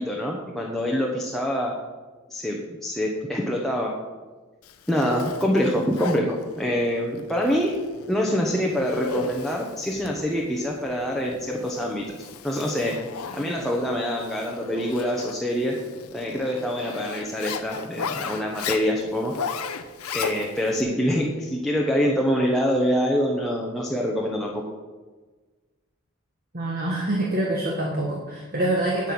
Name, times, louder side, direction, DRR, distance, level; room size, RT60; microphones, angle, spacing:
voice 1, 0.0-1.7 2.3-3.9 4.9-7.8 8.1-12.0 12.4-12.9 13.3-15.8 16.1-19.3 20.1-24.5, equal, ahead, -2 dB, 1.0 m, -25 dB
Zipper (clothing), 4.6-20.8, left 6 dB, 90° left, 0.8 m, -36 dB
voice 2, 26.5-29.1, right 1 dB, 40° right, -2 dB, 1.6 m, -25 dB
8.9 x 8.9 x 6.1 m, 1.3 s
head